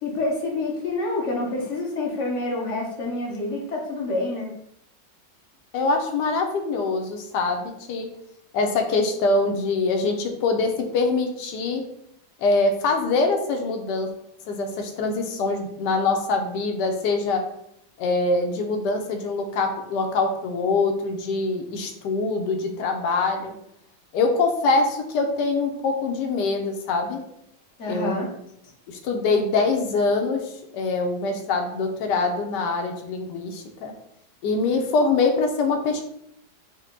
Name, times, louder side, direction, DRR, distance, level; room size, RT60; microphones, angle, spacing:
voice 1, 0.0-4.5 27.8-28.3, left 2 dB, 55° left, -1 dB, 0.8 m, -27 dB
voice 2, 5.7-8.1 8.5-11.8 12.4-14.1 14.5-17.5 18.0-23.6 24.1-27.2 27.9-28.3 28.9-33.9 34.4-36.0, left 3 dB, 75° left, 4 dB, 1.2 m, -24 dB
4.3 x 2.1 x 3.6 m, 0.76 s
omnidirectional pair, 2.0 m